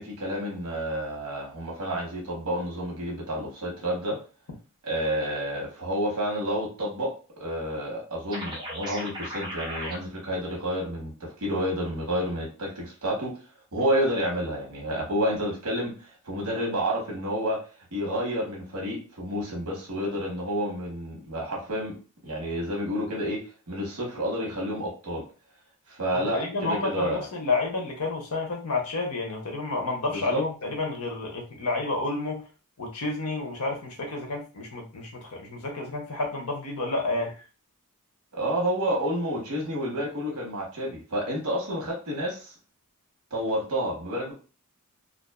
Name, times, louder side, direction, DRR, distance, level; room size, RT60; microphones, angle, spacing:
voice 1, 0.0-4.2 4.8-7.1 7.4-11.1 11.4-13.3 13.7-17.6 17.9-22.0 22.2-23.4 23.7-25.2 25.9-27.3 30.1-30.4 38.3-42.5 43.3-44.3, equal, 65° right, -2 dB, 1.0 m, -29 dB
sound 1, 8.3-10.0, equal, 20° right, 0.6 m, -36 dB
voice 2, 26.1-32.4 32.8-37.3, left 3 dB, 70° left, 2 dB, 0.8 m, -30 dB
2.5 x 2.3 x 2.3 m, 0.35 s
head